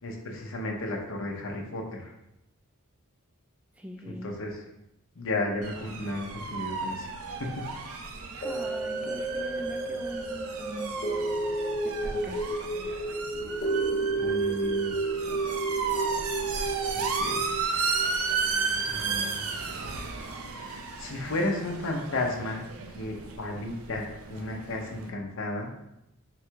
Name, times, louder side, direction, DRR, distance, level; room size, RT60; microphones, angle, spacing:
voice 1, 0.0-2.1 4.1-4.6 5.2-7.1 7.4-7.7 12.1-12.3 14.2-15.0 16.6-16.7 16.9-17.4 18.9-19.5 20.6-22.6 22.9-25.7, left 2 dB, 65° left, 1 dB, 0.7 m, -33 dB
voice 2, 3.8-4.3 8.4-11.0 11.6-12.4, equal, 5° right, 3 dB, 0.3 m, -42 dB
sound 1, 5.6-25.1, right 4 dB, 75° right, 0.5 m, -34 dB
sound 2, 8.4-18.8 19.2-19.3, right 3 dB, 35° left, 1.0 m, -31 dB
3.8 x 2.3 x 4.5 m, 0.85 s
head